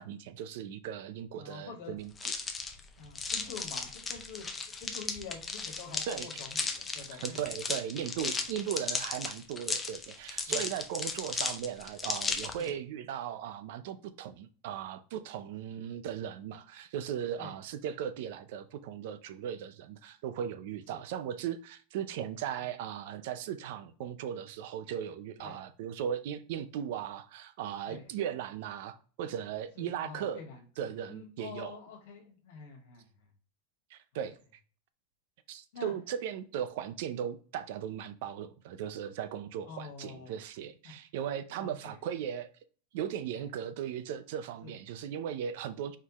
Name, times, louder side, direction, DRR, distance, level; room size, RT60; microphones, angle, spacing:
voice 1, 0.0-2.3 6.1-6.4 7.2-30.4 30.8-31.7 33.9-34.4 35.5-42.5 42.9-46.0, right 9 dB, 60° right, 0.5 m, -37 dB
voice 2, 1.3-1.9 3.0-4.5 4.8-7.4 10.5-10.6 12.6-12.7 17.4-17.5 20.9-21.0 25.4-25.6 27.9-28.1 29.8-30.6 31.1-33.1 35.7-35.9 39.6-40.4 40.8-40.9 41.6-42.0 43.4-43.5 44.6-44.7, left 5 dB, 70° left, 1.9 m, -46 dB
sound 1, 2.2-12.7, left 4 dB, 10° left, 0.5 m, -36 dB
4.6 x 3.5 x 3.0 m
supercardioid pair, 165°, 0 cm